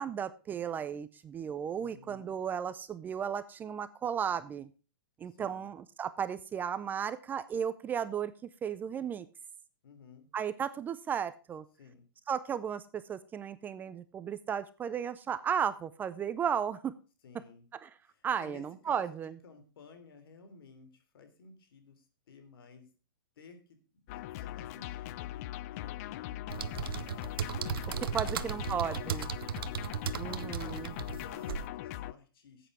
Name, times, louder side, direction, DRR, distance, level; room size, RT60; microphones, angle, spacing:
voice 1, 0.0-4.7 5.2-8.3 8.6-9.3 10.3-11.6 12.3-16.9 18.2-19.3 28.0-29.3 30.2-30.9, right 8 dB, 15° right, 15 dB, 0.5 m, -34 dB
voice 2, 1.8-2.3 5.2-5.7 9.8-10.3 11.8-12.0 17.2-17.7 18.0-22.9 23.4-23.8 24.1-27.4 27.9-28.5 28.8-32.7, left 5 dB, 70° left, 8 dB, 3.2 m, -54 dB
sound 1, 24.1-32.1, left 14 dB, 40° left, 0.5 m, -40 dB
sound 2, 26.5-31.7, right 9 dB, 70° right, 0.8 m, -36 dB
12.0 x 8.3 x 4.9 m, 0.34 s
hypercardioid pair, 145°, 13 cm